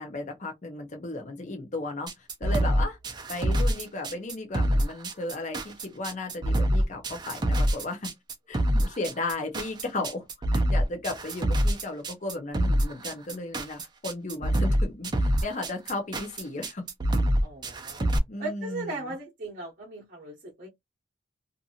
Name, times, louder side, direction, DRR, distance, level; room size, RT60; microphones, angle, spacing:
voice 1, 0.0-2.1 2.4-3.0 3.3-8.1 8.5-10.3 10.5-16.9 18.0-19.1, left 2 dB, 40° left, 0.6 m, -35 dB
sound 1, 2.1-18.2, equal, 20° right, 0.5 m, -25 dB
voice 2, 17.4-18.1 18.4-20.7, right 2 dB, 45° right, 0.8 m, -37 dB
2.5 x 2.5 x 2.8 m
head